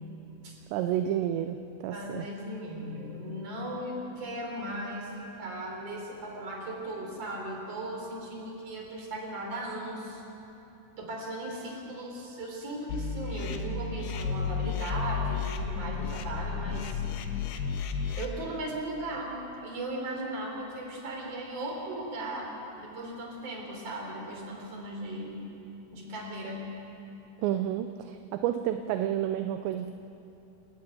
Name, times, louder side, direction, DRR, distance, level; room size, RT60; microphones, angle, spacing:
voice 1, 0.7-2.3 27.4-29.9, right 11 dB, 80° right, 8 dB, 2.8 m, -30 dB
voice 2, 1.9-10.2 11.0-17.0 18.1-25.4 25.9-26.7, right 1 dB, 35° right, -1 dB, 4.7 m, -37 dB
sound 1, 12.9-18.3, left 5 dB, 70° left, 3.2 m, -32 dB
29.0 x 13.0 x 9.3 m, 3.0 s
omnidirectional pair, 5.3 m